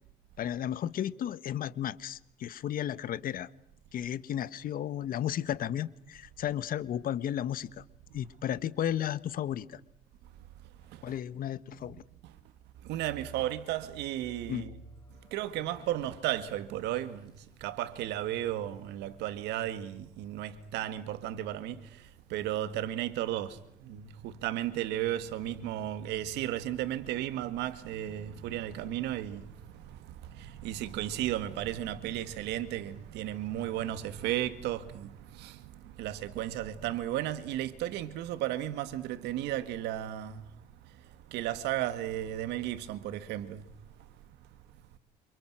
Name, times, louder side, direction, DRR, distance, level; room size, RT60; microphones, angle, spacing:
voice 1, 0.4-3.5 3.9-7.8 8.1-9.8 11.0-12.0 14.5-14.6, left 10 dB, 55° left, 1.5 m, -33 dB
voice 2, 12.8-14.8 15.3-17.3 17.6-40.4 41.3-43.7, right 12 dB, 85° right, 2.1 m, -34 dB
sound 1, 14.2-24.0 24.3-24.4 24.9-25.1, equal, 20° left, 6.6 m, -58 dB
28.5 x 27.5 x 6.3 m
cardioid pair, 110°, 17 cm